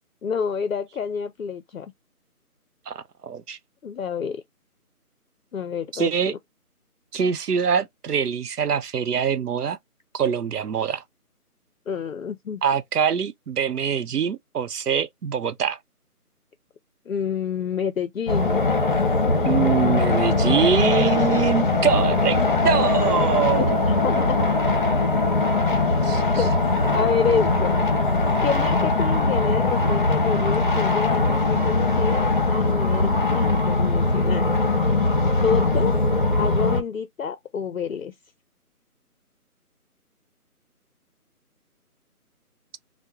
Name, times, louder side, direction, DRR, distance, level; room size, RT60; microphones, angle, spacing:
voice 1, 0.2-1.9 3.8-4.4 5.5-6.4 11.9-12.6 17.1-18.8 19.2-19.4 22.4-22.5 23.6-24.5 26.3-26.5 26.9-27.8 28.4-34.5 35.4-36.0 36.4-38.1, left 6 dB, 60° left, 0.5 m, -28 dB
voice 2, 2.9-3.6 5.9-6.3 7.1-9.8 10.1-11.0 12.6-15.8 19.5-24.2 26.0-26.4, right 7 dB, 80° right, 0.7 m, -24 dB
sound 1, 18.3-36.8, left 3 dB, 35° left, 0.8 m, -21 dB
3.5 x 2.1 x 2.9 m
figure-of-eight pair, 170°, 46 cm